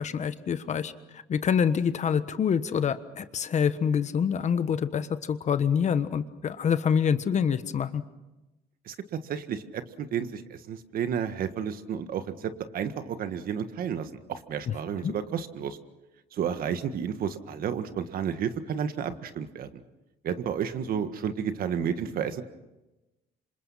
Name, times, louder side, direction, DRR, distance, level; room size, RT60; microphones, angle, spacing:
voice 1, 0.0-8.0 15.0-15.1, left 7 dB, 45° left, 12 dB, 1.3 m, -26 dB
voice 2, 9.2-15.8 16.3-19.8 20.2-22.4, right 8 dB, 60° right, 10 dB, 1.7 m, -31 dB
27.0 x 26.0 x 5.7 m, 1.0 s
cardioid pair, 110°, 17 cm